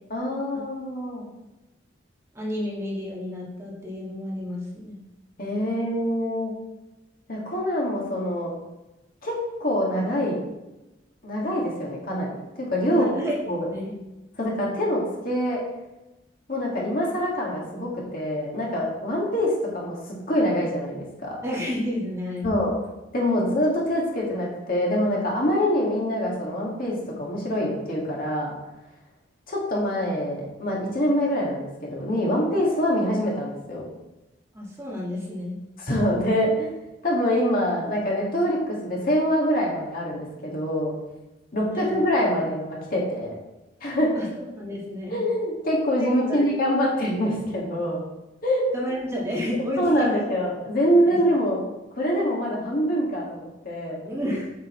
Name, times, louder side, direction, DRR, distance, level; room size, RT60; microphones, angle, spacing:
voice 1, 0.1-1.3 5.4-6.5 7.3-8.5 9.2-9.3 9.6-10.4 11.2-13.1 13.5-13.6 14.4-15.6 16.5-21.4 22.4-22.7 23.1-28.6 29.5-33.9 35.9-36.7 37.0-40.9 41.5-43.3 43.8-44.1 45.1-48.0 48.4-48.6 49.8-51.6 52.0-54.0, equal, 50° left, -3 dB, 2.0 m, -25 dB
voice 2, 2.3-5.0 12.9-13.4 13.7-14.0 21.4-22.7 34.5-35.6 41.7-42.0 44.1-45.2 46.0-46.6 48.7-50.2 51.0-51.2 54.0-54.5, left 1 dB, 15° right, -5 dB, 1.7 m, -31 dB
7.7 x 6.7 x 3.2 m, 1.0 s
head